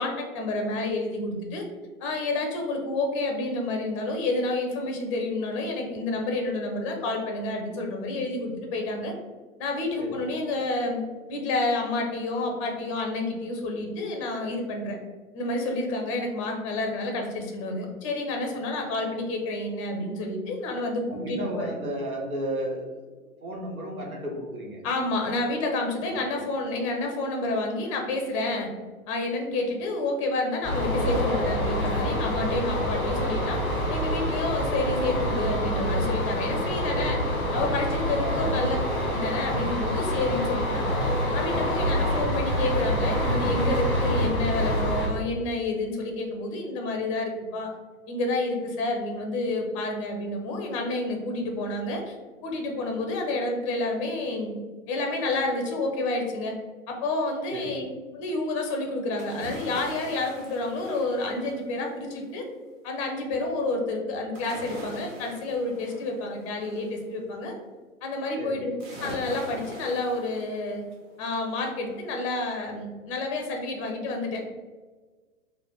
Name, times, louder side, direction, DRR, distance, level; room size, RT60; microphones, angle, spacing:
voice 1, 0.0-1.6 2.0-9.1 9.6-11.0 11.3-15.0 15.3-21.7 24.8-28.7 29.1-33.6 33.9-37.2 37.5-38.8 39.1-40.9 41.3-47.7 48.1-52.1 52.4-54.5 54.9-56.5 56.9-57.9 58.1-62.4 62.8-67.5 68.0-68.7 69.0-70.8 71.2-74.6, left 2 dB, 25° left, 3 dB, 0.5 m, -29 dB
voice 2, 21.1-23.0 23.4-24.8 26.1-26.2 38.2-38.7 57.5-57.8 68.4-68.6, right 1 dB, 85° right, -1 dB, 1.0 m, -33 dB
sound 1, 30.6-45.1, equal, ahead, 0.8 m, -26 dB
sound 2, 59.2-62.0 64.3-67.0 68.8-71.1 71.5-71.6, equal, 25° right, 0.8 m, -42 dB
3.2 x 2.1 x 3.9 m, 1.4 s
figure-of-eight pair, 115°, 42 cm